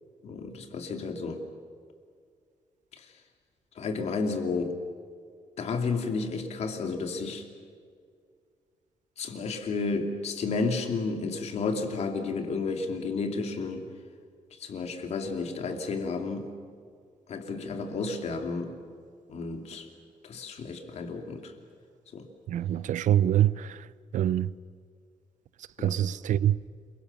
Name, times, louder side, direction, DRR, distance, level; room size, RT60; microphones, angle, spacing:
voice 1, 0.2-1.4 3.8-4.8 5.6-7.4 9.2-13.8 14.6-16.5 17.3-18.7 19.3-19.9 20.2-21.5 22.1-22.2 25.8-25.9, left 4 dB, 60° left, 2.8 m, -32 dB
voice 2, 22.5-23.8 24.1-24.5 25.8-26.6, right 11 dB, 80° right, 0.7 m, -25 dB
28.5 x 23.0 x 7.1 m
wide cardioid pair, 180°, 13 cm